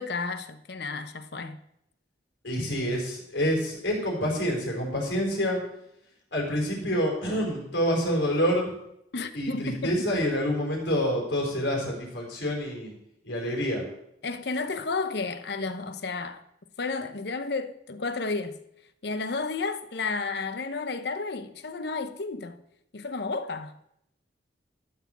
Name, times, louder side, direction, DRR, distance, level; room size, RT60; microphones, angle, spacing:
voice 1, 0.0-1.6 9.1-10.1 14.2-16.4 16.8-18.6 19.0-22.6 22.9-23.7, left 4 dB, 60° left, 0.8 m, -32 dB
voice 2, 2.4-5.6 6.3-8.7 9.3-12.9 13.2-13.8, equal, 80° left, 4.4 m, -27 dB
13.0 x 6.0 x 7.3 m
head